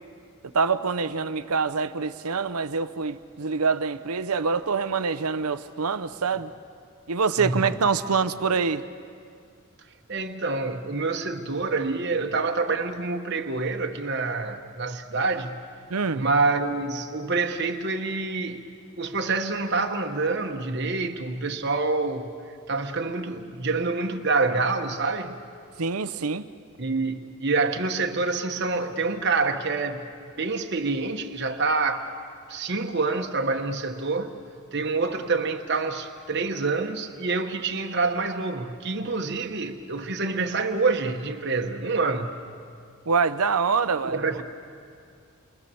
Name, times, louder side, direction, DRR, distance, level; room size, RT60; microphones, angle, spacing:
voice 1, 0.5-6.5 7.1-8.8 15.9-16.2 25.8-26.5 43.1-44.2, right 5 dB, 85° right, 0.8 m, -25 dB
voice 2, 7.4-7.7 10.1-15.6 16.1-18.6 19.0-22.3 22.7-25.3 26.8-30.1 30.4-32.1 32.5-34.3 34.7-42.3 44.0-44.4, right 3 dB, 50° right, 1.2 m, -27 dB
29.0 x 24.0 x 7.0 m
head